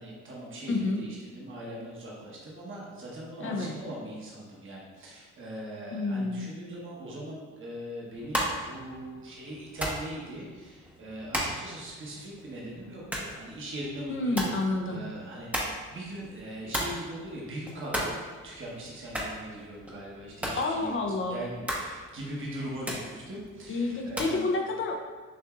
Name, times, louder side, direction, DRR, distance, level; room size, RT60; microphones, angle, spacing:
voice 1, 0.0-14.5 14.8-18.2 18.4-20.9 21.3-24.4, right 1 dB, 40° right, -4 dB, 1.1 m, -40 dB
voice 2, 0.7-1.0 3.4-3.8 5.9-6.5 14.1-15.0 20.6-21.4 23.7-25.1, left 3 dB, 45° left, 2 dB, 0.6 m, -29 dB
sound 1, 8.1-24.4, equal, 5° right, 0.8 m, -37 dB
6.4 x 2.6 x 2.4 m, 1.5 s
cardioid pair, 90°, 30 cm